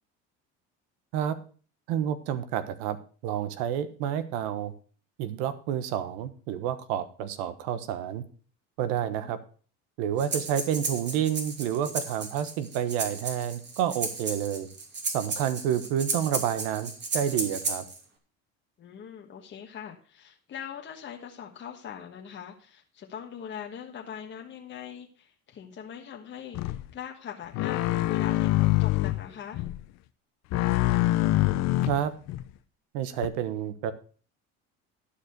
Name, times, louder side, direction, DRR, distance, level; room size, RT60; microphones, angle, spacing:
voice 1, 1.9-3.0 3.2-4.7 5.2-8.2 8.8-9.4 10.0-14.7 15.1-17.8 31.9-32.1 32.9-33.9, right 9 dB, 85° right, 12 dB, 1.2 m, -29 dB
Breathing, 10.2-18.0, right 4 dB, 35° right, 2.5 m, -34 dB
voice 2, 18.8-29.6, left 8 dB, 40° left, 1 dB, 1.4 m, -42 dB
sound 1, 26.5-26.9 27.5-29.2 29.5-29.8 30.5-32.4 33.2-33.3, left 16 dB, 65° left, 0.7 m, -25 dB
11.5 x 5.0 x 6.6 m, 0.41 s
supercardioid pair, 105°, 29 cm